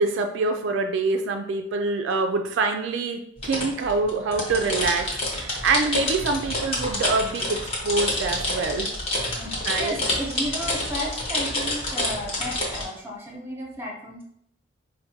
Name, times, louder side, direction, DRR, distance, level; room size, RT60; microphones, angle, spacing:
voice 1, 0.0-8.9 9.7-9.9, right 3 dB, 70° right, 6 dB, 0.3 m, -25 dB
sound 1, 3.4-12.8, left 1 dB, 30° left, 0.8 m, -28 dB
voice 2, 9.4-14.2, equal, 10° right, -2 dB, 0.7 m, -34 dB
4.4 x 2.1 x 2.7 m, 0.70 s
head